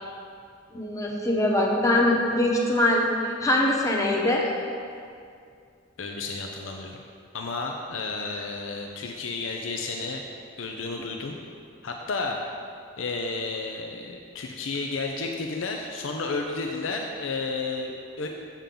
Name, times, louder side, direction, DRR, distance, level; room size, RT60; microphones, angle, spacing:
voice 1, 0.7-3.0 3.4-4.4, left 1 dB, 15° left, -2 dB, 0.9 m, -22 dB
voice 2, 6.0-7.0 7.3-10.2 10.6-11.4 11.8-12.4 13.0-18.3, left 3 dB, 90° left, 2 dB, 0.6 m, -32 dB
7.3 x 7.0 x 3.8 m, 2.3 s
head